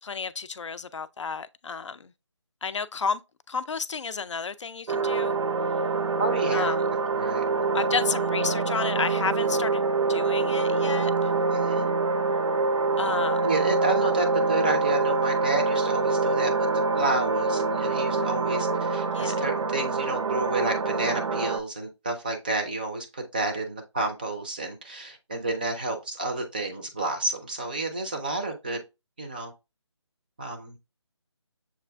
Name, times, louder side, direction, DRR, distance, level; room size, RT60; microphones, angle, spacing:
voice 1, 0.0-2.1 2.6-3.2 3.5-5.3 6.5-6.9 7.7-9.8 10.1-11.3 13.0-13.5 19.1-19.4, left 5 dB, 75° left, 0.4 m, -31 dB
sound 1, 4.9-21.6, right 3 dB, 80° right, 0.5 m, -25 dB
voice 2, 6.2-6.8 7.1-7.4 11.5-11.9 13.4-16.7 16.9-28.8 29.2-29.5 30.4-30.8, right 2 dB, 20° right, 0.4 m, -30 dB
6.9 x 2.5 x 2.2 m
figure-of-eight pair, 160°, 16 cm